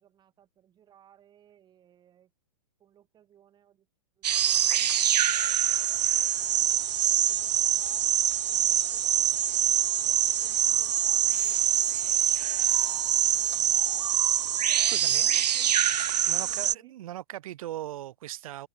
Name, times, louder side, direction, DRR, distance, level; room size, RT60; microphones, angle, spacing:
voice 1, 0.0-2.3 2.8-3.9 4.2-8.1 8.5-14.1 14.7-16.9, right 10 dB, 20° right, 3.1 m, -60 dB
sound 1, 4.2-16.7, right 10 dB, 90° right, 0.5 m, -25 dB
voice 2, 14.9-15.4 16.3-18.7, right 14 dB, 60° right, 0.7 m, -39 dB
hypercardioid pair, 135°, 20 cm